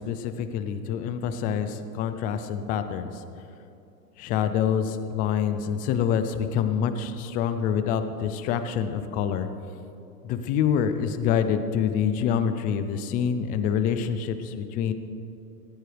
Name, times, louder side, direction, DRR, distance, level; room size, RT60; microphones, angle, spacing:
voice 1, 0.0-3.1 4.2-9.5 10.2-14.9, left 8 dB, 20° left, 10 dB, 0.4 m, -26 dB
17.0 x 15.0 x 3.4 m, 2.8 s
hypercardioid pair, 125°, 48 cm